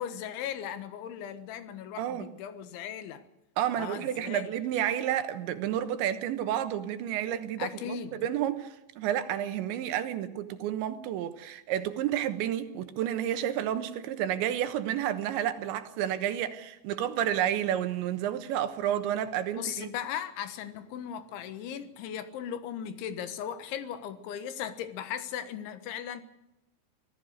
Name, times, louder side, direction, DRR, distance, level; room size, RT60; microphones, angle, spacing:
voice 1, 0.0-3.2 3.8-4.5 7.6-8.3 19.5-26.2, left 9 dB, 85° left, 3.7 m, -37 dB
voice 2, 2.0-2.3 3.6-19.9, right 11 dB, 80° right, 3.5 m, -30 dB
25.0 x 16.5 x 6.6 m
omnidirectional pair, 5.2 m